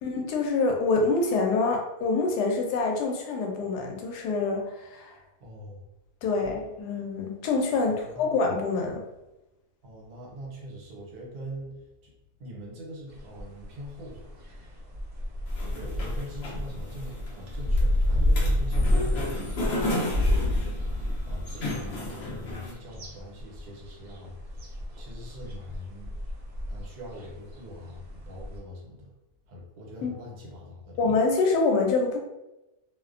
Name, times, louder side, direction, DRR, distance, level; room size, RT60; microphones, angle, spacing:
voice 1, 0.0-5.2 6.2-9.0 30.0-30.1 31.0-32.2, left 3 dB, 85° left, 2 dB, 1.1 m, -26 dB
voice 2, 5.4-5.9 7.8-8.3 9.8-12.1 12.4-14.3 15.7-26.1 26.7-29.1 29.5-31.0, equal, 75° right, -2 dB, 1.2 m, -43 dB
sound 1, 13.1-28.6, left 1 dB, 55° right, 0.9 m, -30 dB
sound 2, 15.5-22.7, left 1 dB, 60° left, 0.6 m, -34 dB
2.8 x 2.1 x 2.4 m, 0.96 s
omnidirectional pair, 1.7 m